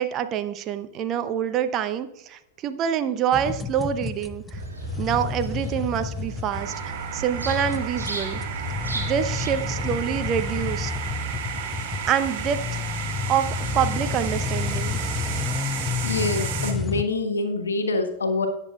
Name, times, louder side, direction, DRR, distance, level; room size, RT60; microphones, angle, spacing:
voice 1, 0.0-4.6 5.0-8.4 8.9-10.9 12.1-12.8 13.3-15.0, right 9 dB, 35° right, 10 dB, 0.7 m, -26 dB
sound 1, 3.3-17.0, left 5 dB, 10° left, 0.6 m, -31 dB
sound 2, 4.5-9.9, right 3 dB, 80° right, 2.2 m, -37 dB
sound 3, 6.5-16.7, right 8 dB, 50° right, 1.6 m, -33 dB
voice 2, 16.0-18.5, left 3 dB, 70° left, 6 dB, 1.3 m, -25 dB
18.5 x 6.9 x 2.3 m, 0.85 s
figure-of-eight pair, 90°, 0 cm